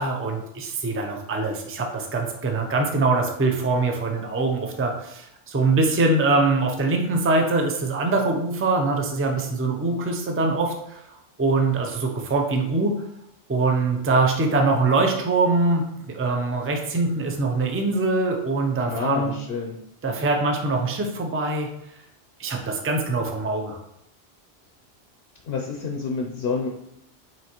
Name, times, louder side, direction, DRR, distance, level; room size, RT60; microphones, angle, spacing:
voice 1, 0.0-11.0 11.4-12.9 13.5-19.3 20.0-21.7 22.4-23.8, right 3 dB, 20° right, 3 dB, 0.3 m, -23 dB
voice 2, 18.8-19.8 25.5-26.7, left 5 dB, 75° left, 1 dB, 0.8 m, -28 dB
5.8 x 2.7 x 2.9 m, 0.78 s
omnidirectional pair, 1.1 m